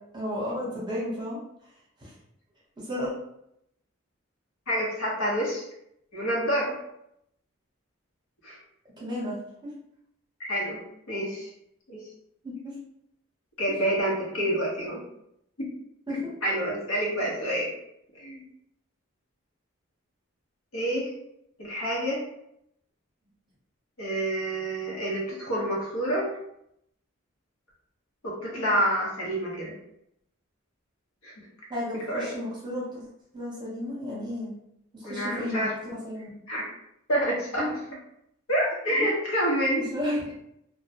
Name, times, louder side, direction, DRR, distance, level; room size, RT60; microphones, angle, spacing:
voice 1, 0.1-1.4 2.0-2.1 2.8-3.1 9.0-9.4 9.6-9.7 12.4-12.7 16.1-16.3 31.7-33.0 33.3-34.5 34.9-35.7 36.0-36.4 37.6-37.7 39.9-40.4, left 1 dB, 20° right, -6 dB, 0.7 m, -32 dB
voice 2, 4.7-5.7 6.1-6.8 8.4-8.6 10.4-10.8 11.1-11.5 11.9-12.0 13.6-15.0 15.6-15.7 16.4-17.7 18.1-18.4 20.7-21.1 21.6-22.2 24.0-26.3 28.2-29.7 31.2-31.3 32.1-32.3 35.0-35.7 36.5-36.6 37.1-37.7 38.5-39.9, right 1 dB, 80° left, -4 dB, 0.8 m, -28 dB
2.1 x 2.1 x 2.7 m, 0.78 s
head